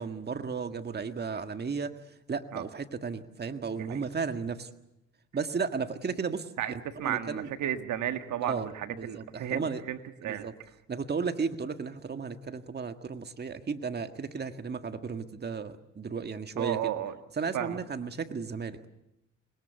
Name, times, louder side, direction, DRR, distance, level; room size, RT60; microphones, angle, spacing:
voice 1, 0.0-4.7 5.3-7.5 8.4-9.8 10.2-10.5 10.9-16.9 17.4-18.8, right 5 dB, 35° right, 8 dB, 1.7 m, -34 dB
voice 2, 7.0-10.5 16.6-17.1 17.5-17.8, right 11 dB, 75° right, 9 dB, 1.7 m, -33 dB
26.0 x 20.5 x 8.2 m, 0.85 s
cardioid pair, 90°, 30 cm